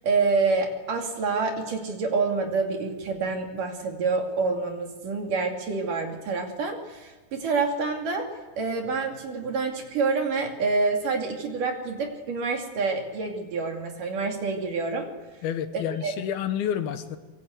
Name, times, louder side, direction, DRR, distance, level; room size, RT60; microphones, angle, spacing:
voice 1, 0.0-8.3 8.6-15.1 15.7-16.1, right 4 dB, 60° right, 2 dB, 4.1 m, -27 dB
voice 2, 15.4-17.2, left 9 dB, 75° left, 9 dB, 3.1 m, -29 dB
25.0 x 23.0 x 8.1 m, 1.2 s
omnidirectional pair, 4.4 m